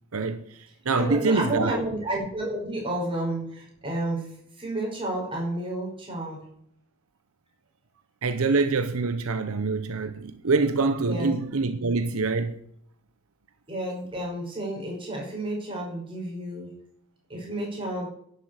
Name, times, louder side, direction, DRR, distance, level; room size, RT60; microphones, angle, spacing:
voice 1, 0.1-1.8 8.2-12.6, right 4 dB, 75° right, 0.8 m, -25 dB
voice 2, 0.9-4.3 4.6-6.4 11.0-11.3 13.7-16.7 17.3-18.1, right 1 dB, 25° right, 5.5 m, -31 dB
11.0 x 7.7 x 8.3 m
head